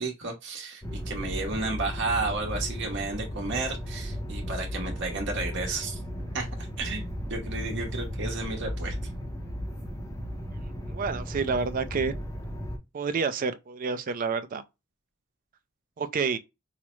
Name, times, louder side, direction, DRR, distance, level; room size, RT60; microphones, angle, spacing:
voice 1, 0.0-6.0 6.3-9.0, right 3 dB, 55° right, 0.9 m, -32 dB
sound 1, 0.8-12.8, equal, 15° left, 0.5 m, -35 dB
voice 2, 10.9-12.1 12.9-14.6 16.0-16.4, right 5 dB, 40° right, 0.3 m, -29 dB
4.8 x 2.0 x 3.0 m
head